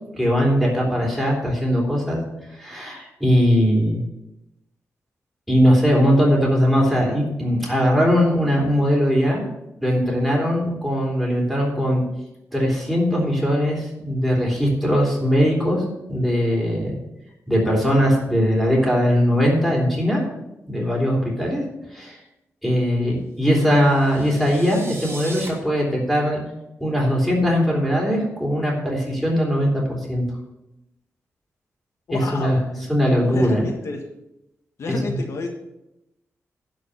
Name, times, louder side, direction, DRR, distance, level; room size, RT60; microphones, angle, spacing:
voice 1, 0.1-2.2 2.5-4.0 5.5-9.4 9.8-12.0 12.5-15.8 16.1-17.0 17.5-20.2 20.7-21.6 21.9-22.2 22.6-26.4 26.8-30.3 32.1-32.6 32.9-33.6 34.9-35.2, equal, ahead, -3 dB, 3.7 m, -20 dB
sound 1, 23.6-25.5, right 2 dB, 45° right, 2.9 m, -39 dB
voice 2, 32.1-32.9 33.2-34.0 34.8-35.5, left 3 dB, 65° left, 2 dB, 1.5 m, -30 dB
11.5 x 5.0 x 8.4 m, 0.89 s
wide cardioid pair, 140°, 5 cm